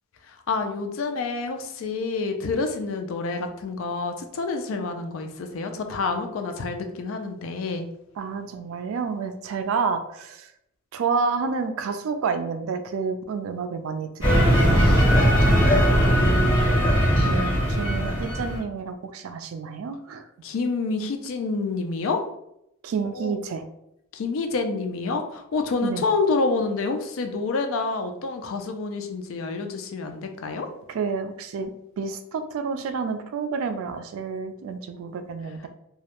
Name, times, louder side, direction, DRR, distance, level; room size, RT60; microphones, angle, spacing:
voice 1, 0.3-7.8 20.4-22.2 23.1-23.3 24.1-30.7, left 3 dB, 70° left, 6 dB, 0.4 m, -28 dB
voice 2, 8.2-10.5 10.9-15.1 16.2-16.3 17.2-20.3 22.8-23.6 25.8-26.0 30.9-31.7 32.0-35.7, right 5 dB, 75° right, 8 dB, 0.3 m, -29 dB
sound 1, 14.2-18.6, equal, 25° left, 1.0 m, -19 dB
2.3 x 2.1 x 2.8 m, 0.79 s
head